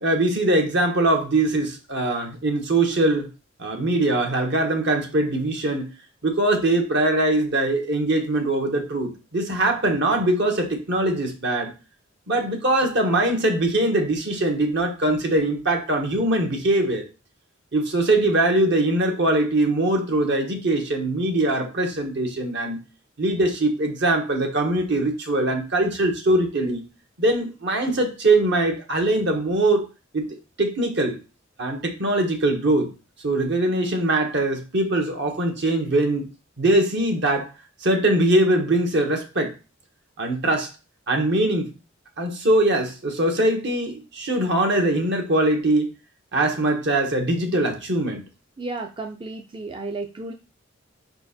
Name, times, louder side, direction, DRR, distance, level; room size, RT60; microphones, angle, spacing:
voice 1, 0.0-3.3 3.6-5.9 6.2-11.7 12.3-17.0 17.7-22.8 23.2-26.9 27.2-29.8 30.1-30.3 30.6-31.2 31.6-32.9 33.2-36.3 36.6-37.5 37.8-39.5 40.2-40.7 41.1-41.7 42.2-45.9 46.3-48.2, right 1 dB, 60° right, 3 dB, 1.4 m, -22 dB
voice 2, 48.6-50.3, right 3 dB, 25° right, 3 dB, 0.5 m, -33 dB
5.2 x 4.4 x 4.3 m, 0.31 s
head